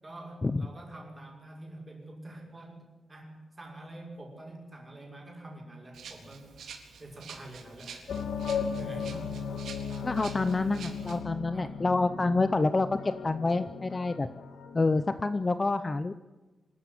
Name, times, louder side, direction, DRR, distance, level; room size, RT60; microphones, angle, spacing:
voice 1, 0.0-6.5 7.0-8.0 8.5-9.3 11.5-11.7 12.1-12.4, right 1 dB, 20° right, 0 dB, 6.0 m, -46 dB
Rattle (instrument), 5.9-11.2, right 6 dB, 85° right, 3.8 m, -48 dB
sound 1, 8.1-15.5, left 6 dB, 90° left, 2.0 m, -37 dB
voice 2, 10.0-14.3 14.7-16.1, left 3 dB, 20° left, 11 dB, 0.6 m, -27 dB
25.5 x 13.5 x 9.2 m, 1.2 s
wide cardioid pair, 180°, 0 cm